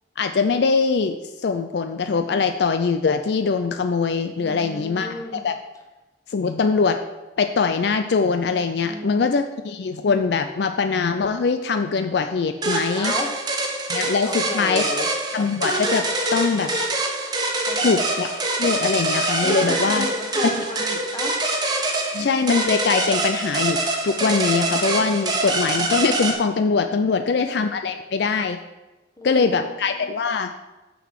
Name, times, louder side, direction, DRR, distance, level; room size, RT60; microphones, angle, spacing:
voice 1, 0.2-1.2 1.4-5.6 6.3-7.0 7.4-13.1 13.9-14.8 15.3-16.7 17.8-18.3 18.6-20.1 22.1-28.6 29.2-30.5, left 4 dB, 60° left, 8 dB, 0.4 m, -22 dB
voice 2, 4.3-5.5 8.8-9.3 12.9-13.9 14.2-15.1 17.5-18.1 19.4-21.4 29.2-30.1, left 1 dB, 20° left, 1 dB, 1.3 m, -34 dB
sound 1, 12.6-26.3, right 2 dB, 20° right, 1.3 m, -25 dB
6.9 x 6.0 x 6.4 m, 1.1 s
head